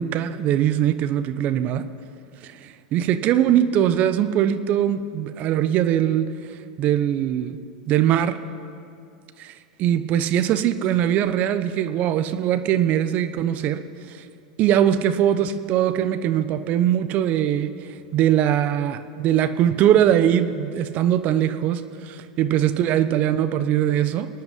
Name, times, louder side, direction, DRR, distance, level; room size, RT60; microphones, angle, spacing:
voice 1, 0.0-1.8 2.4-6.2 6.8-7.6 7.9-8.4 9.4-9.5 9.8-13.8 14.1-14.2 14.6-17.7 18.1-24.3, right 10 dB, 45° right, 11 dB, 1.0 m, -21 dB
27.5 x 9.3 x 5.4 m, 2.5 s
hypercardioid pair, 100°, 4 cm